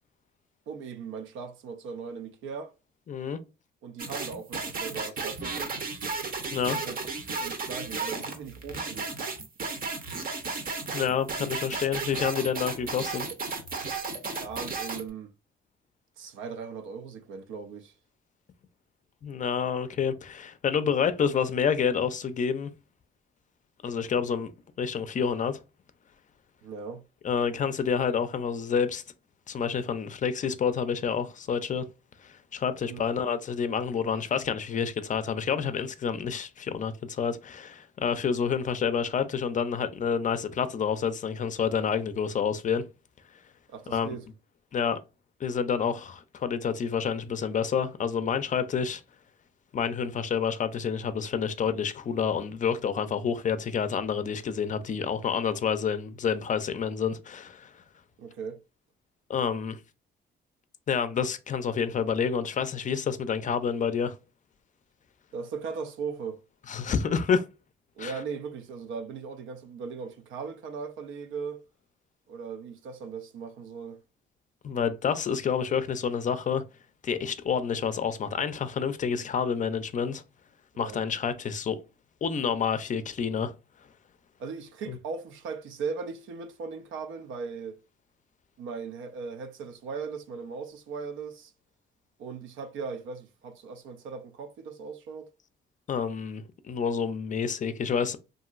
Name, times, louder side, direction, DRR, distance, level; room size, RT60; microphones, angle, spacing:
voice 1, 0.7-2.7 3.8-5.8 6.7-7.0 7.4-9.1 14.2-15.3 16.2-17.9 26.6-27.0 32.8-33.0 43.7-44.2 58.2-58.6 65.3-66.4 68.0-71.6 72.3-74.0 80.7-81.0 84.4-87.8 88.6-91.5 92.2-95.3, right 5 dB, 85° right, 0.5 m, -38 dB
voice 2, 3.1-3.4 6.5-6.8 10.9-13.3 19.2-22.7 23.8-24.5 24.8-25.6 27.2-29.0 29.5-31.8 32.2-42.9 43.9-44.1 44.7-45.0 45.4-49.0 49.7-57.7 59.3-59.8 60.9-64.1 66.7-67.5 68.0-68.1 74.6-76.6 77.0-80.2 80.8-81.8 82.2-83.5 84.9-85.0 95.9-98.2, left 6 dB, 40° left, 0.4 m, -28 dB
sound 1, 4.0-15.1, right 4 dB, 45° right, 0.7 m, -34 dB
2.8 x 2.5 x 2.4 m
cardioid pair, 90°, 20 cm